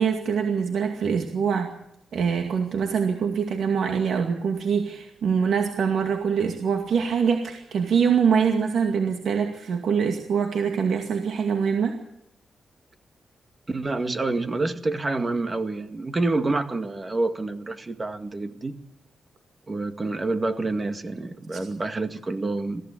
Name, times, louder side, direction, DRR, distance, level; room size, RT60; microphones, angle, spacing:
voice 1, 0.0-1.7 2.1-12.0 21.5-21.6, right 6 dB, 75° right, 4 dB, 2.3 m, -24 dB
voice 2, 13.7-18.8 19.7-22.8, right 2 dB, 25° right, 8 dB, 2.0 m, -27 dB
23.0 x 15.5 x 8.5 m, 0.79 s
cardioid pair, 110°, 0 cm